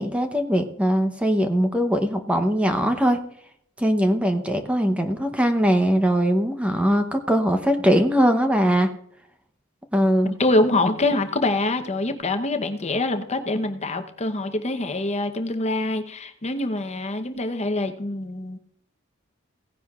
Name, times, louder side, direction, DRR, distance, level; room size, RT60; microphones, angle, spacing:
voice 1, 0.0-3.2 3.8-8.9 9.9-10.3, equal, 5° right, 6 dB, 0.8 m, -21 dB
voice 2, 10.2-18.6, left 2 dB, 35° left, 7 dB, 0.8 m, -25 dB
17.0 x 9.9 x 2.4 m, 0.69 s
head